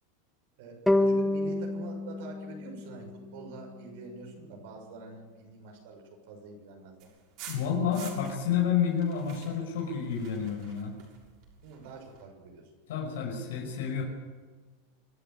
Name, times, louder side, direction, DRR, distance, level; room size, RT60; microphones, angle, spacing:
voice 1, 0.6-7.0 11.6-12.6, right 4 dB, 65° right, 1 dB, 6.7 m, -45 dB
sound 1, 0.9-4.1, left 2 dB, 5° left, 0.7 m, -29 dB
sound 2, 7.0-8.6 8.9-12.2, right 8 dB, 50° right, 6.5 m, -49 dB
voice 2, 7.5-10.9 12.9-14.0, left 7 dB, 80° left, 0 dB, 5.6 m, -30 dB
25.5 x 13.0 x 8.3 m, 1.4 s
supercardioid pair, 145°, 0 cm